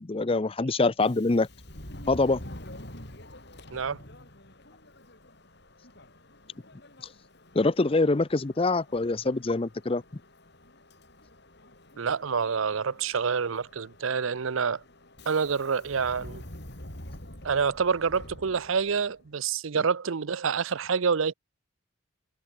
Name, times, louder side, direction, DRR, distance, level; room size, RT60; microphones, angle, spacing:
voice 1, 0.0-1.5 2.1-2.4 7.5-10.0, left 3 dB, 25° left, 0.6 m, -24 dB
Subway metro underground, 0.9-19.3, left 1 dB, 55° left, 6.8 m, -47 dB
voice 2, 3.7-4.0 12.0-14.8 15.3-16.4 17.4-21.3, right 6 dB, 75° right, 0.6 m, -27 dB
head